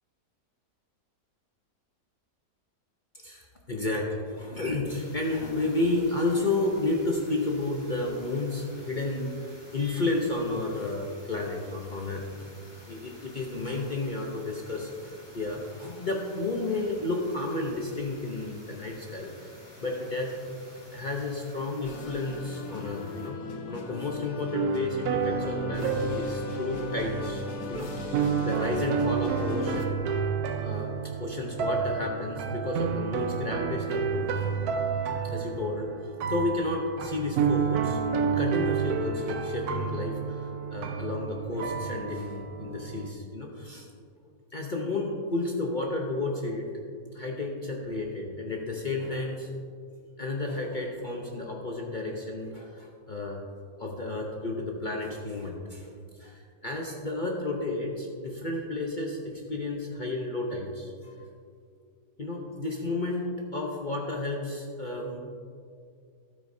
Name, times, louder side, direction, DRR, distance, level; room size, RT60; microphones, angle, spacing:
voice 1, 3.1-12.3 12.9-19.5 19.8-20.4 20.7-23.4 23.6-27.4 27.7-27.9 28.2-30.0 30.6-30.9 31.2-34.7 35.2-40.4 40.7-43.9 44.5-46.7 47.1-49.5 50.2-53.5 53.8-55.9 56.2-61.3 62.2-65.2, left 2 dB, 45° left, -1 dB, 0.6 m, -32 dB
sound 1, 4.8-23.3, left 1 dB, 15° left, 1.8 m, -51 dB
sound 2, 21.8-29.9, left 4 dB, 70° left, 1.3 m, -39 dB
sound 3, 24.5-43.1, right 6 dB, 70° right, 1.1 m, -30 dB
12.5 x 8.7 x 2.7 m, 2.3 s
omnidirectional pair, 1.8 m